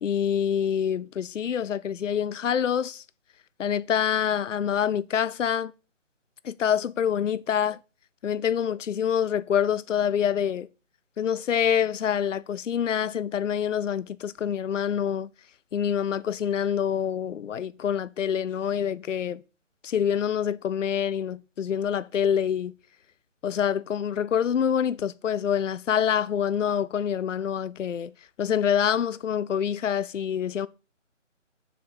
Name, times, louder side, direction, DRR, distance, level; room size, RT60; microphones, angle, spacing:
voice 1, 0.0-3.0 3.6-5.7 6.4-7.8 8.2-10.7 11.2-15.3 15.7-19.4 19.8-22.7 23.4-28.1 28.4-30.7, left 8 dB, 75° left, 0.5 m, -26 dB
6.8 x 4.1 x 6.1 m
figure-of-eight pair, 155°, 38 cm